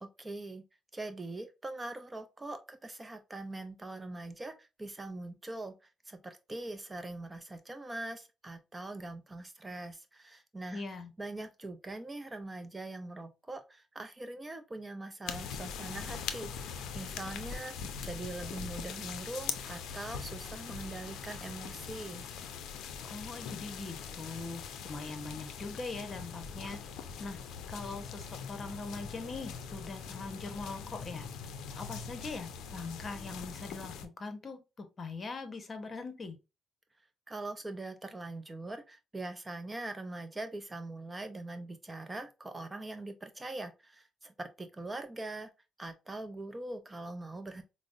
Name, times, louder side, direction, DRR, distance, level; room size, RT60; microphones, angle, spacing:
voice 1, 0.0-0.6 0.9-5.7 6.1-10.8 11.2-22.3 37.3-45.5 45.8-47.6, right 2 dB, 20° right, 0.5 m, -42 dB
voice 2, 10.7-11.1 23.1-26.8 27.2-27.4 27.7-31.2 31.8-36.4, left 3 dB, 40° left, 0.8 m, -41 dB
sound 1, 15.3-34.0, left 6 dB, 85° left, 0.4 m, -42 dB
5.0 x 2.0 x 2.4 m
cardioid pair, 90°, 0 cm